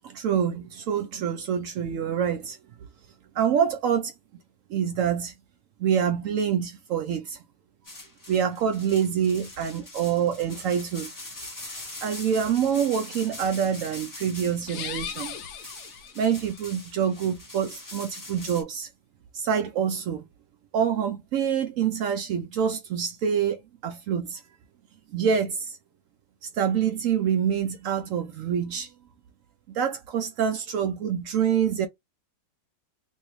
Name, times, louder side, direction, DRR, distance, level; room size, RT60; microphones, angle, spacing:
voice 1, 0.0-2.6 3.3-4.1 4.7-5.3 5.8-7.4 8.3-11.1 11.7-15.4 16.2-18.9 19.3-20.2 20.7-24.4 25.1-25.8 26.4-28.9 29.7-31.9, right 8 dB, 80° right, 0.7 m, -26 dB
sound 1, 7.8-18.6, left 2 dB, 20° left, 0.5 m, -42 dB
sound 2, 14.6-16.6, left 8 dB, 65° left, 0.8 m, -38 dB
3.1 x 2.7 x 3.0 m
omnidirectional pair, 1.9 m